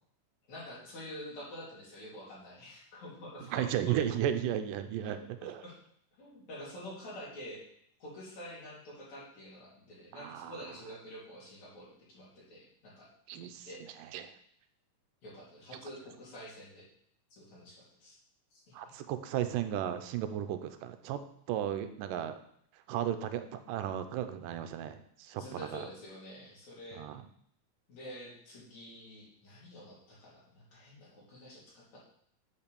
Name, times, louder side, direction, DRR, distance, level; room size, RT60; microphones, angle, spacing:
voice 1, 0.5-4.0 5.0-5.8 6.2-7.6 8.0-13.1 13.6-13.9 15.2-16.9 17.4-18.2 18.5-18.9 25.3-27.0 27.9-32.0, equal, 60° left, -6 dB, 4.4 m, -48 dB
voice 2, 3.5-5.6 10.2-10.5 13.3-13.7 14.1-14.3 18.7-21.2 21.5-22.4 22.9-25.8 27.0-27.2, right 10 dB, 85° right, 9 dB, 2.3 m, -34 dB
8.1 x 5.6 x 6.9 m, 0.67 s
omnidirectional pair, 3.8 m